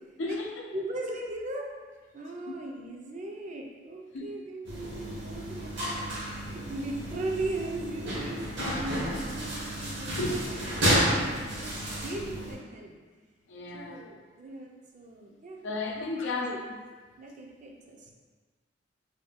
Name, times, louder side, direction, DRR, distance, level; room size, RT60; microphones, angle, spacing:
voice 1, 0.2-0.5 4.1-4.3 10.2-10.7 13.5-14.0 15.6-16.5, left 2 dB, 80° left, 0 dB, 0.5 m, -33 dB
voice 2, 0.7-1.7 2.1-10.4 10.8-11.7 12.0-12.9 13.7-15.6 15.9-16.6 17.2-18.0, right 2 dB, 40° right, 0 dB, 0.4 m, -38 dB
sound 1, 4.6-12.5, equal, 70° right, 0.9 m, -31 dB
2.7 x 2.2 x 4.0 m, 1.4 s
head